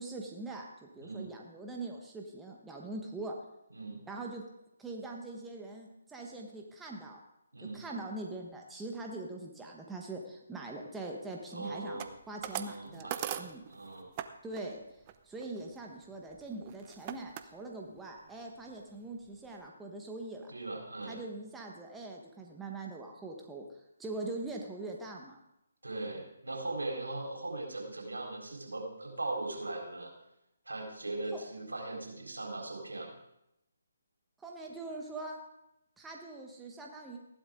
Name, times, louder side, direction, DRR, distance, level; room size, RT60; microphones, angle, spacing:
voice 1, 0.0-3.3 4.1-4.4 4.8-7.2 7.7-13.1 13.4-13.6 14.4-14.8 15.2-20.5 21.1-23.7 24.0-25.4 31.3-31.4 34.4-35.4 36.0-37.2, right 2 dB, 5° right, 0 dB, 1.3 m, -42 dB
voice 2, 1.0-1.3 3.7-4.0 7.5-7.9 11.5-12.1 12.4-14.1 20.5-21.2 25.8-30.1 30.7-33.1, right 2 dB, 90° right, 0 dB, 4.1 m, -39 dB
sound 1, 12.0-14.3 14.5-14.8 15.1-17.4 18.0-18.3 18.7-18.8 19.0-19.6, right 11 dB, 30° right, 0.6 m, -41 dB
15.0 x 11.5 x 3.8 m, 0.84 s
figure-of-eight pair, 150°, 0 cm